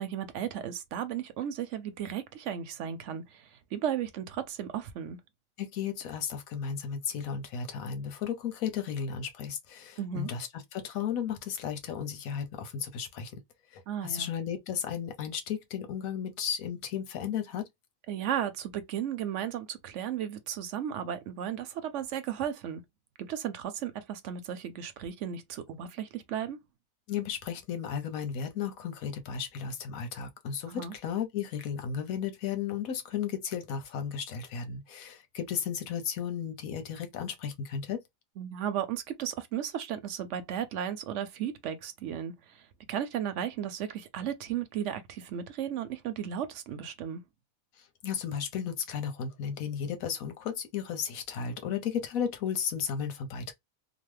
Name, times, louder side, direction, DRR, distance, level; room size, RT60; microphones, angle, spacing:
voice 1, 0.0-5.2 10.0-10.3 13.9-14.3 18.1-22.8 23.3-26.6 30.7-30.9 38.4-47.2, right 9 dB, 70° right, 0.8 m, -35 dB
voice 2, 5.6-13.3 13.7-17.7 27.1-38.0 47.8-53.5, left 7 dB, 85° left, 1.2 m, -34 dB
3.0 x 2.1 x 3.1 m
omnidirectional pair, 1.4 m